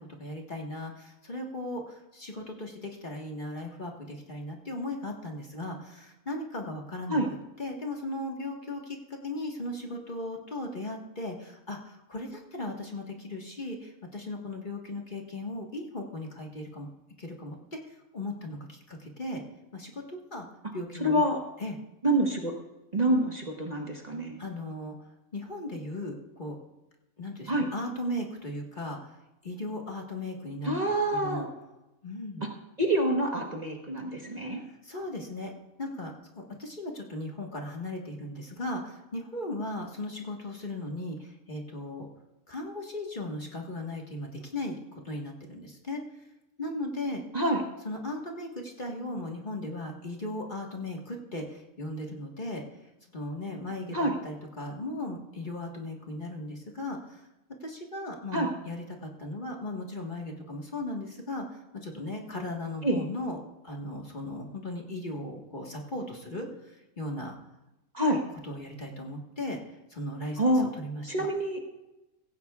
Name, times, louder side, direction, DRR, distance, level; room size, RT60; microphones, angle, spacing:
voice 1, 0.0-7.2 7.6-16.9 17.2-17.8 18.1-19.4 19.7-20.4 20.7-21.2 21.6-21.8 24.4-24.9 25.3-26.6 27.2-29.1 29.4-31.5 32.0-32.4 34.7-35.5 35.8-42.1 42.5-46.0 46.6-47.2 47.8-52.6 53.1-54.0 54.2-57.2 57.6-63.4 63.6-67.3 68.4-69.6 69.9-71.3, left 1 dB, 35° left, 0 dB, 1.6 m, -37 dB
voice 2, 21.0-21.4 22.0-22.5 22.9-24.4 27.5-27.7 30.6-31.5 32.8-34.6 47.3-47.6 53.9-54.1 58.3-58.5 62.8-63.0 67.9-68.2 70.4-70.7 71.1-71.6, right 1 dB, 30° right, 1 dB, 1.3 m, -26 dB
16.0 x 16.0 x 2.4 m, 0.98 s
omnidirectional pair, 1.5 m